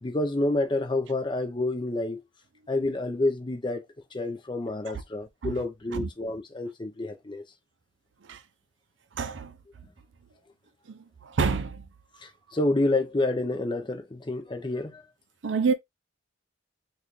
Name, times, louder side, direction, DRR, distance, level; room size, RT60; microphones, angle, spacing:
voice 1, 0.0-2.2 2.7-3.8 4.1-7.4 12.2-15.0, left 2 dB, 25° left, 0.6 m, -28 dB
voice 2, 9.2-9.5 10.9-11.8 15.4-15.7, right 5 dB, 70° right, 0.5 m, -28 dB
4.0 x 2.4 x 3.0 m
head